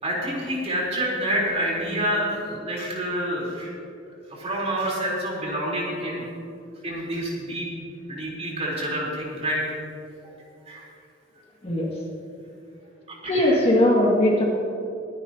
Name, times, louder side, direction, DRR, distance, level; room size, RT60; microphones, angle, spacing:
voice 1, 0.0-3.7 4.3-6.3 6.8-7.7 8.1-9.6 10.7-10.9 13.2-13.6, right 1 dB, 35° right, -4 dB, 3.7 m, -28 dB
voice 2, 13.3-14.4, left 1 dB, 30° left, -3 dB, 2.1 m, -19 dB
23.0 x 10.5 x 2.8 m, 2.7 s
head